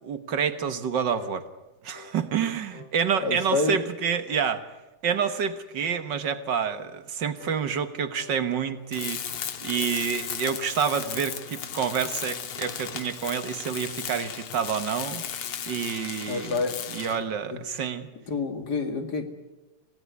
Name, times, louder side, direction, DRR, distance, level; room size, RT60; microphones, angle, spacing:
voice 1, 0.0-1.5 1.8-4.6 5.0-15.2 15.7-16.5 16.9-18.1, right 7 dB, 60° right, 10 dB, 1.8 m, -28 dB
sound 1, 1.2-1.4 1.9-2.2 2.7-3.0 3.5-3.7 4.3-4.5 5.1-5.3 5.8-6.1 6.6-6.8 7.4-7.6 8.2-8.4 8.9-9.2 9.7-10.0 10.5-10.8 11.3-11.6 12.1-12.3 12.8-13.1, left 6 dB, 65° left, 3.2 m, -47 dB
voice 2, 3.2-3.8 16.3-16.8 17.5-17.6 18.3-19.3, left 4 dB, 50° left, 6 dB, 2.6 m, -28 dB
Tools, 8.9-17.3, left 8 dB, 85° left, 2.3 m, -35 dB
26.5 x 17.0 x 9.6 m, 1.1 s
omnidirectional pair, 2.4 m